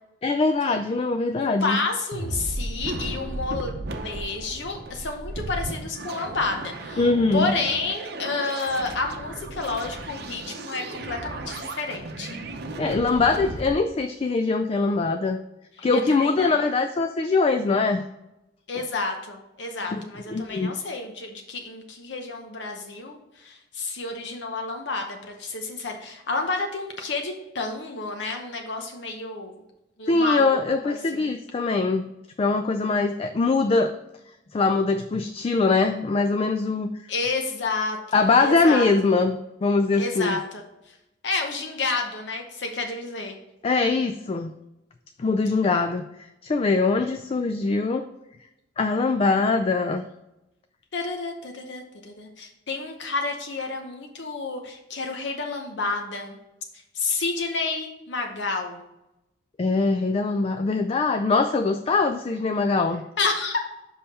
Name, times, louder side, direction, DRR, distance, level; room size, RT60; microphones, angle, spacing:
voice 1, 0.2-1.8 7.0-7.5 12.8-15.4 15.8-18.0 19.9-20.0 20.3-20.7 30.1-32.1 32.4-34.0 34.5-36.9 38.1-40.4 43.6-44.5 45.2-46.1 46.4-48.1 48.8-50.1 59.6-63.0, left 3 dB, 30° left, 8 dB, 0.3 m, -22 dB
voice 2, 1.4-3.7 4.0-7.0 7.3-12.4 15.9-16.6 18.7-29.5 30.0-31.3 37.1-38.9 40.0-40.6 41.2-43.3 50.9-56.4 56.9-58.8 63.2-63.6, left 3 dB, 70° left, 3 dB, 0.8 m, -30 dB
sound 1, 2.1-13.7, right 2 dB, 60° right, 0.7 m, -35 dB
5.5 x 5.5 x 4.1 m, 0.93 s
head